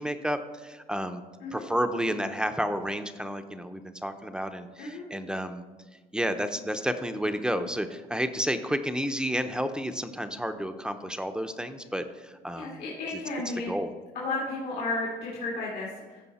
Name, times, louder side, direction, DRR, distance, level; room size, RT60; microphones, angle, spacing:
voice 1, 0.0-1.2 1.5-5.6 6.1-12.8 13.7-13.9, equal, 5° right, 8 dB, 0.6 m, -31 dB
voice 2, 12.6-13.7 14.1-16.2, left 2 dB, 85° left, -5 dB, 2.4 m, -33 dB
14.5 x 5.3 x 4.1 m, 1.3 s
cardioid pair, 110°, 17 cm